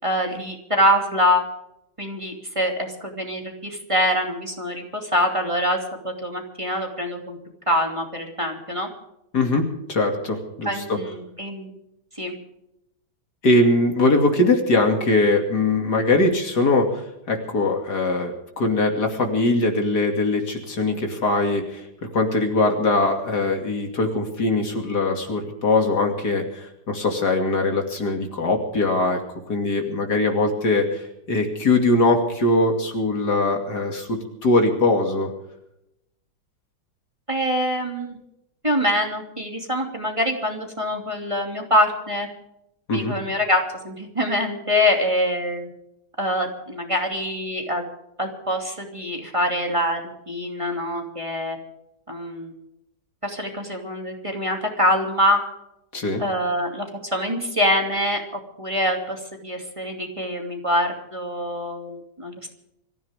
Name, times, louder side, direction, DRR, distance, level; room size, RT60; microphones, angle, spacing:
voice 1, 0.0-1.4 2.0-7.4 7.7-8.9 10.6-11.7 12.2-12.3 37.3-38.2 38.6-42.3 42.9-45.7 46.2-47.8 48.2-50.0 50.3-51.6 52.1-52.5 53.2-55.4 56.2-58.2 58.6-62.5, equal, 15° right, 2 dB, 2.7 m, -24 dB
voice 2, 9.3-11.0 13.4-21.9 22.1-29.2 29.5-35.3 42.9-43.1 55.9-56.2, left 2 dB, 60° left, 3 dB, 3.1 m, -21 dB
24.5 x 15.0 x 3.6 m, 0.83 s
omnidirectional pair, 2.0 m